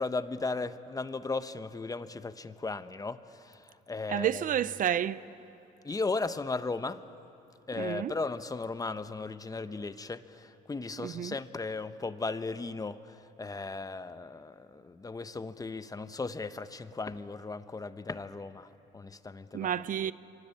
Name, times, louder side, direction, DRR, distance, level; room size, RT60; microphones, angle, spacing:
voice 1, 0.0-4.4 5.8-7.0 7.7-19.7, left 3 dB, 20° left, 1.0 m, -36 dB
voice 2, 4.1-5.2 7.8-8.1 11.0-11.3 19.5-20.1, right 10 dB, 55° right, 0.6 m, -30 dB
27.5 x 24.5 x 8.7 m
cardioid pair, 85°, 16 cm